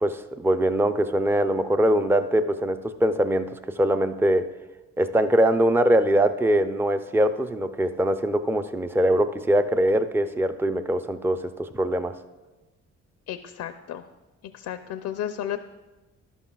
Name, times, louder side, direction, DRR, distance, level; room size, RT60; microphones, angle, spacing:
voice 1, 0.0-3.5 3.8-4.5 5.0-12.1, right 1 dB, 10° right, 9 dB, 0.4 m, -22 dB
voice 2, 13.3-14.0 14.4-15.6, left 10 dB, 70° left, 9 dB, 0.5 m, -33 dB
12.0 x 11.5 x 2.3 m, 1.1 s
cardioid pair, 90°, 30 cm